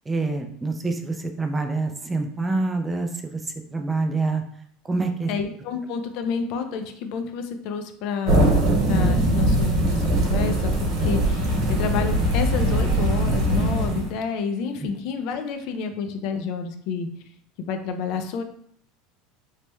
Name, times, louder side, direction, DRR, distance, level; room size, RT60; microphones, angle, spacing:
voice 1, 0.1-4.4 4.9-5.3 14.8-14.9, right 3 dB, 15° right, 5 dB, 0.3 m, -26 dB
voice 2, 5.3-17.1 17.6-18.4, left 5 dB, 60° left, 7 dB, 0.4 m, -29 dB
sound 1, 8.3-14.1, right 1 dB, 50° right, 1.1 m, -21 dB
3.2 x 2.1 x 3.0 m, 0.66 s
supercardioid pair, 130°, 0 cm